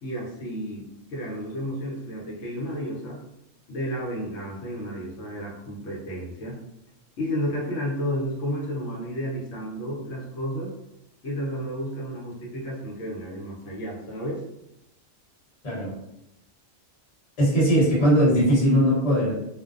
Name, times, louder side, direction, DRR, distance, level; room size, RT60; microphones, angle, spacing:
voice 1, 0.0-3.2 3.7-6.6 7.2-10.7 11.2-14.4, equal, 70° left, -4 dB, 1.0 m, -32 dB
voice 2, 17.4-19.3, equal, 35° left, -7 dB, 1.0 m, -20 dB
2.5 x 2.1 x 2.4 m, 0.85 s
omnidirectional pair, 1.3 m